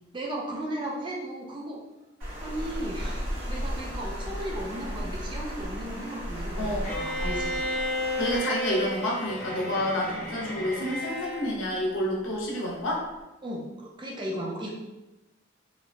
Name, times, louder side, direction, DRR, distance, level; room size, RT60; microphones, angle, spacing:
voice 1, 0.1-1.8 2.4-7.6 13.4-14.7, right 1 dB, 25° right, -2 dB, 0.4 m, -35 dB
Water, 2.2-8.4, equal, 80° right, 1.3 m, -34 dB
voice 2, 6.6-6.9 8.2-13.1, left 1 dB, 90° left, -2 dB, 0.7 m, -29 dB
Bowed string instrument, 6.8-11.5, left 1 dB, 45° left, 0.5 m, -32 dB
2.7 x 2.0 x 2.7 m, 1.0 s
head